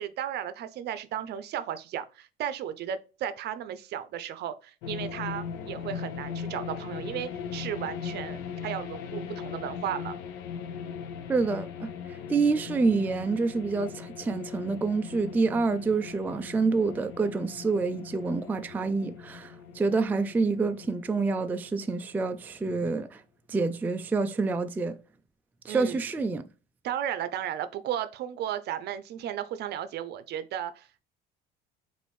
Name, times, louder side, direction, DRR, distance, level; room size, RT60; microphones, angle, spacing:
voice 1, 0.0-10.2 25.7-26.0 26.8-31.0, right 10 dB, 55° right, 0.6 m, -35 dB
sound 1, 4.8-22.5, left 6 dB, 75° left, 0.7 m, -39 dB
voice 2, 11.3-23.2 23.5-25.0 25.7-26.4, right 4 dB, 10° right, 0.3 m, -27 dB
5.0 x 2.6 x 3.1 m
supercardioid pair, 100°, 20 cm